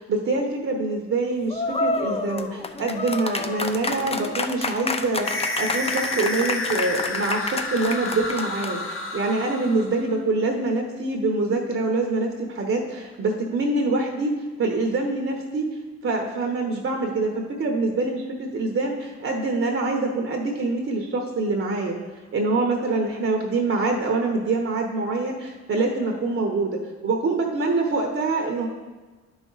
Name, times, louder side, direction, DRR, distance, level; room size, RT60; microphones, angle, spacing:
voice 1, 0.0-14.3 14.6-15.6 16.0-22.0 22.3-28.7, right 3 dB, 45° right, 1 dB, 1.0 m, -25 dB
sound 1, 1.5-8.9, left 3 dB, 20° left, 0.5 m, -29 dB
sound 2, 5.2-10.2, left 2 dB, 45° left, 1.1 m, -30 dB
10.5 x 5.2 x 4.0 m, 1.3 s
cardioid pair, 90°, 30 cm